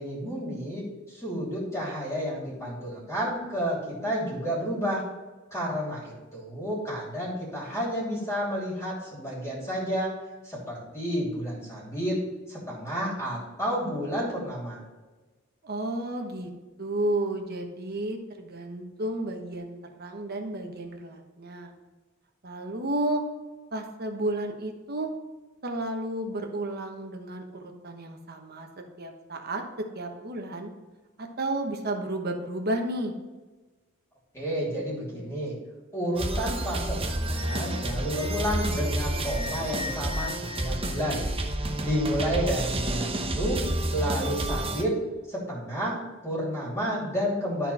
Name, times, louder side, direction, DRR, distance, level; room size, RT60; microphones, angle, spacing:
voice 1, 0.0-5.0 5.5-10.1 10.4-12.2 12.5-14.8 34.3-35.5 35.9-41.2 41.8-43.6 43.9-44.9 45.3-46.0 46.2-47.7, equal, 15° left, -5 dB, 2.8 m, -31 dB
voice 2, 15.6-16.5 16.8-21.7 22.4-23.2 23.7-25.1 25.6-28.7 29.0-30.7 31.2-33.1, right 1 dB, 50° right, 4 dB, 1.1 m, -32 dB
sound 1, 36.1-44.8, right 1 dB, 25° right, 0.8 m, -30 dB
12.5 x 4.3 x 4.2 m, 1.2 s
head